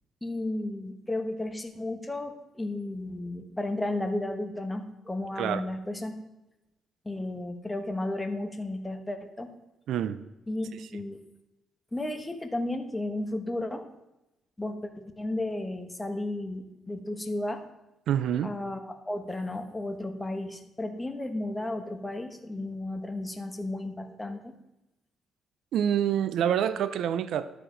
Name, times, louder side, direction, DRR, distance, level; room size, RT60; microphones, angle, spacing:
voice 1, 0.2-6.1 7.0-9.5 10.5-11.2 11.9-13.8 14.6-17.6 18.4-24.5, left 1 dB, 15° left, 6 dB, 1.1 m, -33 dB
voice 2, 9.9-10.2 10.8-10.9 18.1-18.5 25.7-27.5, right 9 dB, 75° right, 14 dB, 0.4 m, -27 dB
11.5 x 4.9 x 5.1 m, 0.95 s
cardioid pair, 90°, 0 cm